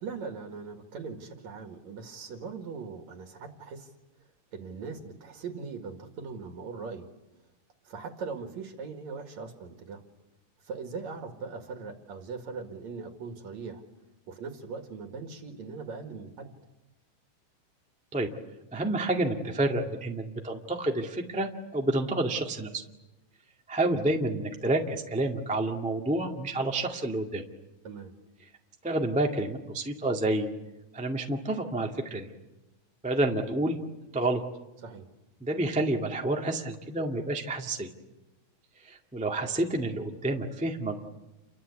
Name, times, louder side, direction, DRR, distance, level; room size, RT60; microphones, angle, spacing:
voice 1, 0.0-3.9 4.5-7.1 7.8-10.0 10.6-13.8 14.3-16.5 27.8-28.1 34.8-35.1, right 5 dB, 55° right, 5 dB, 2.9 m, -40 dB
voice 2, 18.7-22.8 23.7-27.4 28.8-30.5 30.9-32.3 33.0-33.8 34.1-34.4 35.4-37.9 38.8-41.0, right 2 dB, 5° right, 1 dB, 0.9 m, -29 dB
30.0 x 24.0 x 8.3 m, 1.0 s
omnidirectional pair, 4.0 m